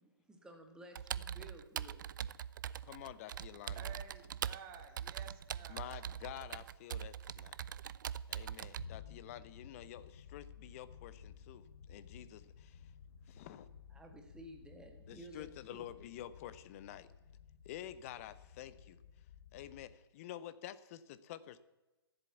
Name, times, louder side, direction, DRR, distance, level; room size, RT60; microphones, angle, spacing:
voice 1, 0.0-2.0 13.9-15.8, right 1 dB, 5° right, 3 dB, 1.8 m, -54 dB
Computer keyboard, 1.0-8.8, right 9 dB, 50° right, 0.4 m, -42 dB
voice 2, 2.8-3.8 5.7-7.6 8.3-12.8 13.3-13.7 15.1-17.1 17.6-19.0 19.5-21.6, left 12 dB, 35° left, 15 dB, 0.7 m, -49 dB
voice 3, 3.7-6.1, right 7 dB, 30° right, 6 dB, 2.1 m, -53 dB
sound 1, 8.8-20.0, left 7 dB, 65° left, 1.2 m, -56 dB
14.0 x 7.9 x 8.2 m, 1.1 s
figure-of-eight pair, 125°, 13 cm